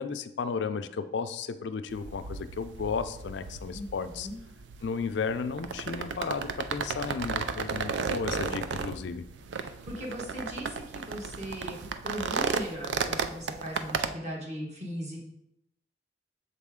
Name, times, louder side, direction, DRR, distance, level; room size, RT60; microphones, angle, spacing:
voice 1, 0.0-4.3 4.8-9.2, left 5 dB, 80° left, 10 dB, 0.4 m, -34 dB
sound 1, 1.9-14.1, right 5 dB, 90° right, 0.4 m, -34 dB
voice 2, 3.7-4.4 9.6-15.2, equal, 40° right, -2 dB, 1.4 m, -39 dB
6.8 x 4.2 x 3.6 m, 0.79 s
head